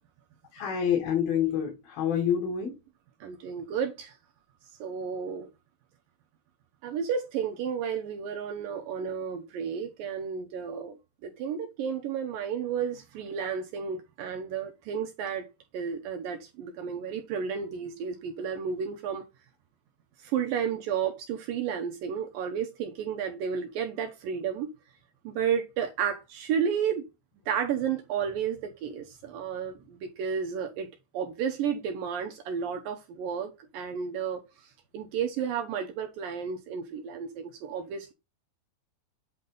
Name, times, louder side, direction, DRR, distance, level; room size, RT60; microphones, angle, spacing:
voice 1, 0.5-2.7, left 8 dB, 60° left, 3.4 m, -27 dB
voice 2, 3.2-4.1 4.8-5.5 6.8-11.0 11.2-15.5 15.7-19.2 20.2-24.7 25.2-27.0 27.5-30.9 31.1-34.4 34.9-38.1, right 7 dB, 80° right, 2.1 m, -32 dB
8.8 x 4.1 x 3.9 m
omnidirectional pair, 5.1 m